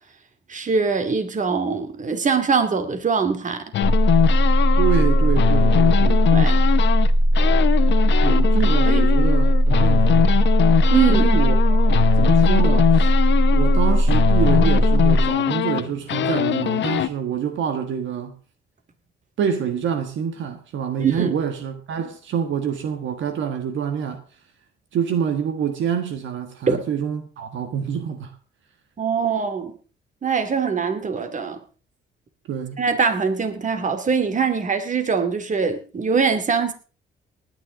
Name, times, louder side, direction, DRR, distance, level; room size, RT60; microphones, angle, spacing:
voice 1, 0.5-3.6 6.3-6.6 8.9-9.0 10.9-11.3 21.0-21.3 26.7-26.8 29.0-29.7 30.2-31.6 32.8-36.7, right 5 dB, 40° right, 2.4 m, -22 dB
sound 1, 3.7-7.1 7.4-17.1, left 11 dB, 65° left, 0.9 m, -22 dB
sound 2, 3.8-15.3, equal, 20° right, 3.7 m, -17 dB
voice 2, 4.8-6.3 8.2-10.5 11.1-13.1 13.5-18.3 19.4-24.2 24.9-28.3 32.5-32.8, right 8 dB, 75° right, 1.7 m, -26 dB
19.0 x 10.0 x 3.8 m
cardioid pair, 90°, 20 cm